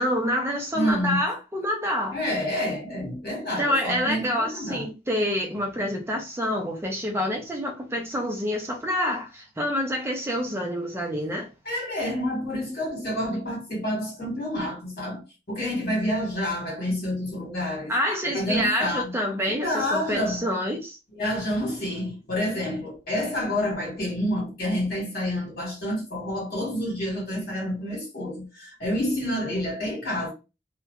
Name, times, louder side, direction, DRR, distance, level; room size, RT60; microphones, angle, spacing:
voice 1, 0.0-2.2 3.6-11.5 17.9-21.0, equal, 15° right, 0.5 m, -27 dB
voice 2, 0.7-1.2 2.1-4.9 11.7-15.2 15.5-17.9 18.3-19.1 19.6-20.5 21.1-30.3, left 1 dB, 55° left, 1.6 m, -28 dB
2.8 x 2.1 x 2.3 m
head